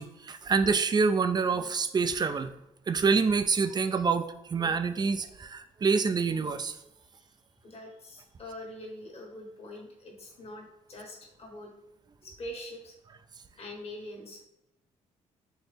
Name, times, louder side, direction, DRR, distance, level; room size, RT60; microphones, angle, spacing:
voice 1, 0.0-2.5 2.9-6.8, right 5 dB, 30° right, 9 dB, 0.4 m, -26 dB
voice 2, 7.6-11.7 12.2-12.9 13.5-14.5, left 1 dB, 45° left, 0 dB, 1.5 m, -44 dB
4.4 x 2.7 x 3.4 m, 0.85 s
supercardioid pair, 70°, 14 cm